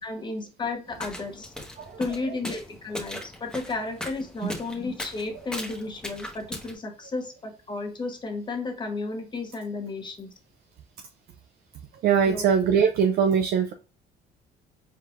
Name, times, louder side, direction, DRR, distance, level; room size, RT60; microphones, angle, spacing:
voice 1, 0.0-1.5 2.0-10.3 12.2-12.5, left 3 dB, 25° left, 4 dB, 1.1 m, -33 dB
sound 1, 0.9-6.7, left 1 dB, 5° left, 1.1 m, -39 dB
voice 2, 12.0-13.7, right 7 dB, 65° right, 6 dB, 0.5 m, -21 dB
4.4 x 3.6 x 2.4 m, 0.37 s
cardioid pair, 110°, 17 cm